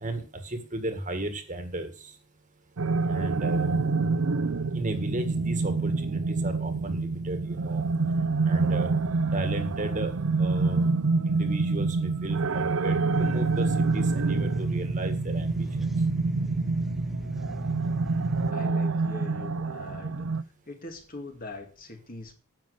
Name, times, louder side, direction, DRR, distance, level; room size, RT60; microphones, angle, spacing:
voice 1, 0.0-2.1 3.1-3.7 4.7-7.8 8.5-8.9 9.3-10.1 10.4-10.8 11.3-15.7, right 1 dB, 35° right, 7 dB, 1.8 m, -34 dB
sound 1, 2.8-20.4, right 3 dB, 65° right, 0.5 m, -27 dB
sound 2, 13.1-18.5, right 1 dB, ahead, 0.5 m, -34 dB
voice 2, 18.5-20.3 20.7-22.3, left 2 dB, 40° left, 4 dB, 2.1 m, -42 dB
10.5 x 7.4 x 6.5 m, 0.37 s
head